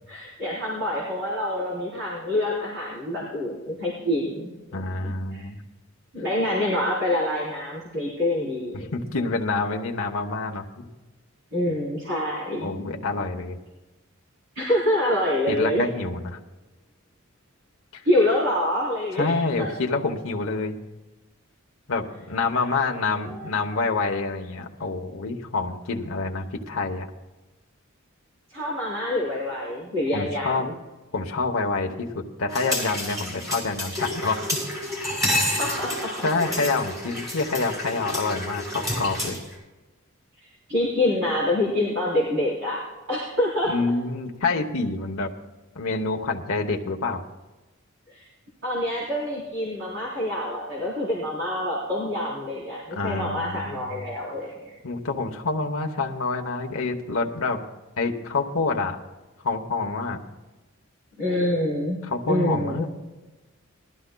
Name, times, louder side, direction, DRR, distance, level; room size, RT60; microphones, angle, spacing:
voice 1, 0.1-5.4 6.1-8.9 11.5-13.0 14.5-15.8 18.0-19.3 19.6-19.7 22.5-22.9 23.2-23.5 28.5-30.7 35.6-36.3 40.7-42.8 43.1-43.7 48.1-48.2 48.6-54.5 61.2-62.0 62.3-62.8, left 1 dB, 60° right, -6 dB, 3.7 m, -26 dB
voice 2, 4.7-5.6 8.7-10.9 12.6-13.6 15.5-16.4 17.9-18.0 19.1-20.8 21.9-27.1 30.1-30.7 31.1-34.6 35.9-36.0 36.2-39.4 43.7-45.3 45.7-47.2 53.0-54.0 54.8-57.6 58.0-59.0 59.4-60.2 62.0-62.9, left 3 dB, 70° left, 2 dB, 0.9 m, -27 dB
sound 1, 32.5-39.5, left 1 dB, 15° right, 4.5 m, -29 dB
20.0 x 13.0 x 2.2 m, 1.2 s
head